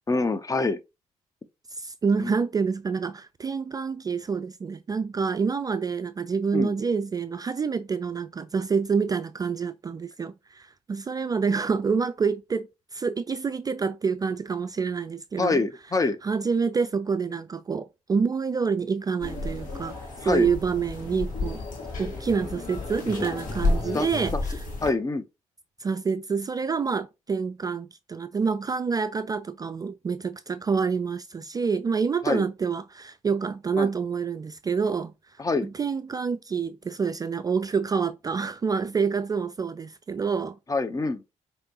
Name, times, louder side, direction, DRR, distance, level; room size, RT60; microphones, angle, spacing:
voice 1, 0.1-0.8 2.1-2.3 6.5-6.7 15.4-16.2 20.2-20.5 23.9-24.1 24.3-24.4 24.8-25.3 32.2-32.5 33.8-33.9 35.4-35.7 40.7-41.2, left 3 dB, 20° left, 0.6 m, -25 dB
voice 2, 1.8-12.7 12.9-15.6 16.2-20.0 20.2-21.6 22.0-24.3 25.8-35.1 35.6-40.6, right 5 dB, 25° right, 0.3 m, -27 dB
sound 1, 19.2-24.9, left 2 dB, 55° left, 1.5 m, -31 dB
5.0 x 2.7 x 2.8 m
figure-of-eight pair, 45°, 16 cm